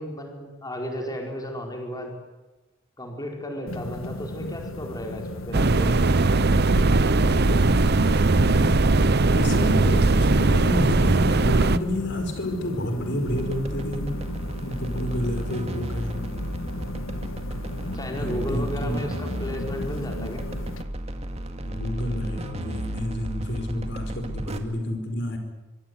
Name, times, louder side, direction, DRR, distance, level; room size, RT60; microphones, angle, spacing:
voice 1, 0.0-2.1 3.0-6.1 17.9-20.4, equal, 20° left, 2 dB, 4.7 m, -34 dB
sound 1, 3.7-20.8, left 2 dB, 85° left, 1.6 m, -36 dB
sound 2, 5.5-11.8, right 2 dB, 55° right, 0.9 m, -19 dB
voice 2, 9.3-14.2 14.5-16.2 18.1-19.0 21.6-25.4, left 1 dB, 60° left, 6 dB, 5.0 m, -30 dB
sound 3, 13.3-24.6, equal, 30° right, 2.3 m, -33 dB
24.5 x 24.5 x 9.6 m, 1.1 s
head